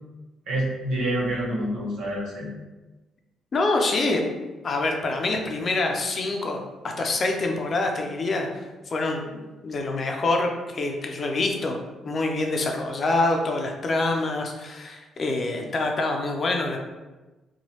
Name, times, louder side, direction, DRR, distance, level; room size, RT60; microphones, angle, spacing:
voice 1, 0.5-2.5, right 1 dB, 80° right, -5 dB, 1.0 m, -27 dB
voice 2, 3.5-4.2 4.6-6.6 7.0-16.8, left 2 dB, 45° left, 2 dB, 0.5 m, -26 dB
3.0 x 2.2 x 2.9 m, 1.1 s
cardioid pair, 90°, 0 cm